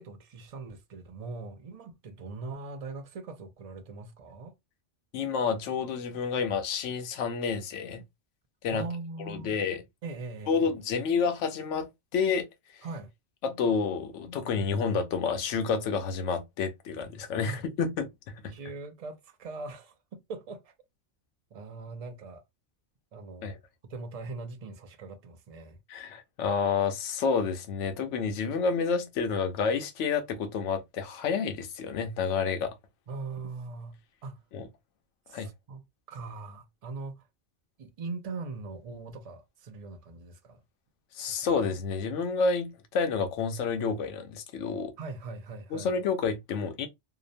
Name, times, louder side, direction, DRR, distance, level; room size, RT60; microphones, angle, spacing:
voice 1, 0.0-4.5 8.7-9.6 10.0-10.7 12.8-13.1 17.5-17.7 18.5-20.7 21.5-22.4 23.1-23.5 23.8-25.8 33.1-34.4 35.3-37.3 37.8-40.6 41.3-41.6 45.0-45.9, right 3 dB, 55° right, 0.4 m, -41 dB
voice 2, 5.1-8.0 8.6-8.8 9.3-9.8 10.5-11.9 12.1-12.5 13.4-18.5 23.4-23.6 25.9-32.7 34.5-34.6 35.3-35.5 41.1-44.9 45.7-46.9, left 5 dB, 90° left, 0.9 m, -29 dB
2.8 x 2.0 x 2.5 m
omnidirectional pair, 1.2 m